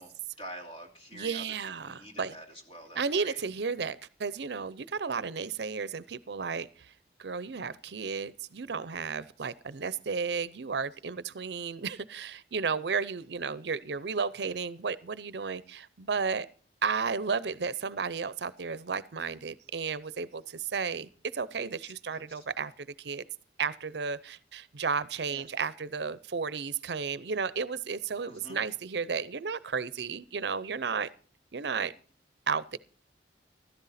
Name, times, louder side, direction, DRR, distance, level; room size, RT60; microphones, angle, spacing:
voice 1, 0.0-1.4 1.8-3.4 22.0-22.4 25.3-25.4 28.2-28.6, equal, 30° left, 2 dB, 2.8 m, -47 dB
voice 2, 1.1-2.3 3.0-6.9 7.2-16.5 16.8-23.3 23.6-31.1 31.5-31.9 32.5-32.8, right 5 dB, 70° right, 18 dB, 0.6 m, -33 dB
14.5 x 13.0 x 4.2 m, 0.40 s
head